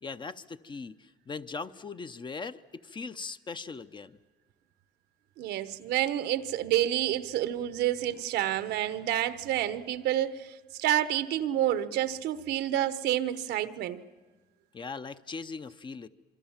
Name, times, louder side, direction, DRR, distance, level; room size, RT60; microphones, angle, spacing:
voice 1, 0.0-4.2 14.7-16.1, left 4 dB, 25° left, 0.7 m, -40 dB
voice 2, 5.4-14.0, right 12 dB, 80° right, 1.0 m, -29 dB
27.0 x 23.5 x 7.3 m
cardioid pair, 110°, 17 cm